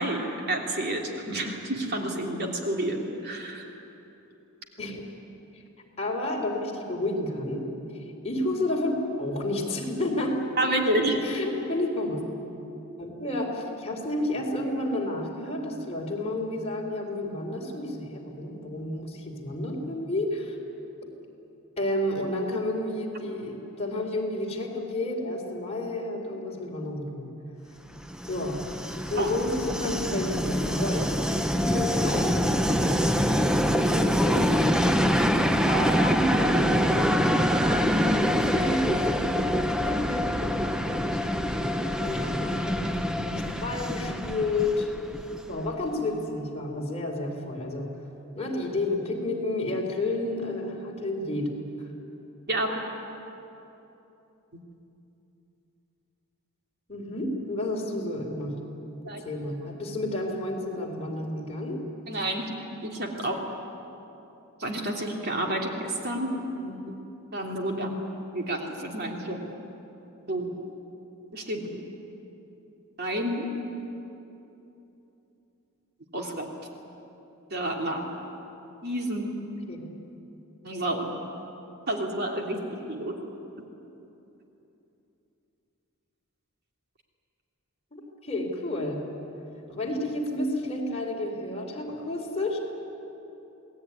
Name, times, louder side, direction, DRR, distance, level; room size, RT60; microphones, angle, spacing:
voice 1, 0.0-3.7 10.6-11.2 29.2-29.3 52.5-52.8 54.5-54.6 59.0-59.2 62.1-62.5 62.8-63.4 64.6-66.8 67.3-68.0 68.3-69.4 70.3-70.5 71.3-71.8 73.0-73.5 76.1-76.5 77.5-78.1 78.8-79.3 80.6-81.2 81.9-82.6 82.9-83.2, right 1 dB, 45° right, 1 dB, 3.1 m, -29 dB
voice 2, 6.0-7.6 7.9-10.7 11.0-12.2 13.0-20.6 21.8-27.3 28.3-28.6 29.1-31.0 31.5-33.0 33.9-34.7 35.6-40.3 41.2-41.4 42.0-44.9 45.5-47.9 48.3-51.5 51.8-51.9 56.9-58.6 59.1-61.8 79.7-79.9 87.9-89.0 89.7-92.6, left 1 dB, 30° left, -1 dB, 4.2 m, -31 dB
Train, 28.0-45.7, equal, 5° right, 0.9 m, -25 dB
28.0 x 19.5 x 9.8 m, 3.0 s
head